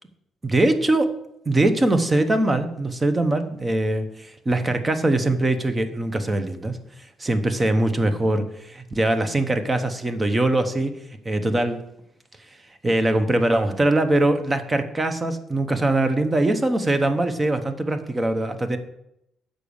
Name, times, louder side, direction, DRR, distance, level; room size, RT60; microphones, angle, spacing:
voice 1, 0.4-1.1 1.5-6.8 7.2-10.9 11.2-11.8 12.8-18.8, right 2 dB, 20° right, 9 dB, 0.8 m, -22 dB
6.6 x 5.1 x 7.0 m, 0.81 s
cardioid pair, 120°, 0 cm